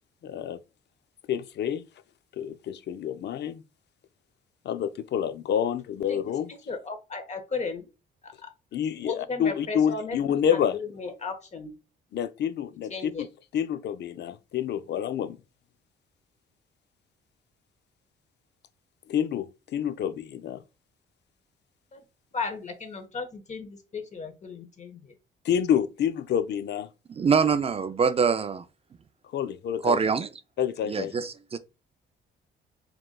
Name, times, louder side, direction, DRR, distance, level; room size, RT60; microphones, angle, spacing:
voice 1, 0.2-0.6 1.3-1.9 2.3-3.6 4.6-6.5 8.7-10.8 12.1-13.3 13.5-15.4 19.1-20.6 25.4-26.9 29.2-30.0 30.6-31.2, left 9 dB, 60° left, 0.5 m, -28 dB
voice 2, 6.7-7.9 8.2-8.5 9.0-10.2 10.9-11.7 12.9-13.2 21.9-22.0 22.3-25.1, left 4 dB, 35° left, 1.2 m, -35 dB
voice 3, 27.2-28.6 29.8-30.3 30.9-31.6, right 6 dB, 30° right, 0.4 m, -24 dB
4.8 x 3.7 x 2.3 m
cardioid pair, 90°, 20 cm